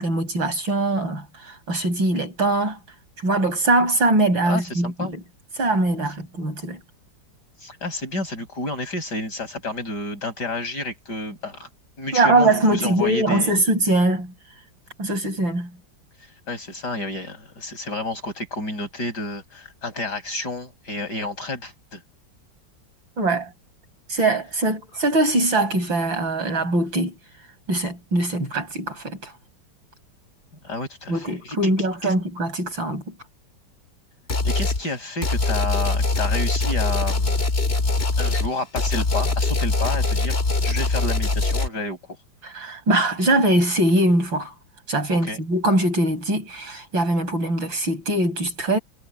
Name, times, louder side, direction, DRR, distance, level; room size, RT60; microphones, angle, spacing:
voice 1, 0.0-2.8 3.2-5.2 5.6-6.8 12.1-14.3 15.0-15.7 23.2-23.5 24.1-27.2 27.7-29.3 31.1-33.1 42.4-44.5 44.9-48.8, right 2 dB, 80° right, 8.4 m, -22 dB
voice 2, 4.4-5.2 7.6-11.7 12.0-13.5 16.5-22.0 30.6-31.6 32.0-32.1 34.4-37.4 38.2-40.3 40.6-42.0 45.1-45.4, left 2 dB, 55° left, 8.8 m, -30 dB
sound 1, 34.3-34.8 35.2-41.7, left 3 dB, 30° left, 2.1 m, -22 dB
omnidirectional pair, 2.1 m